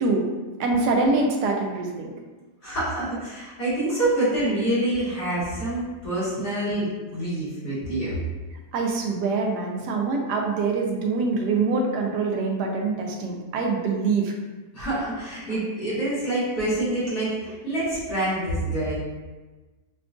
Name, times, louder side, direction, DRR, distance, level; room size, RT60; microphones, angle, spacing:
voice 1, 0.6-2.1 8.7-14.3, right 3 dB, 85° right, 1 dB, 1.2 m, -24 dB
voice 2, 2.6-8.2 14.7-18.9, right 1 dB, 70° left, -12 dB, 2.2 m, -26 dB
5.9 x 2.3 x 2.5 m, 1.2 s
omnidirectional pair, 1.8 m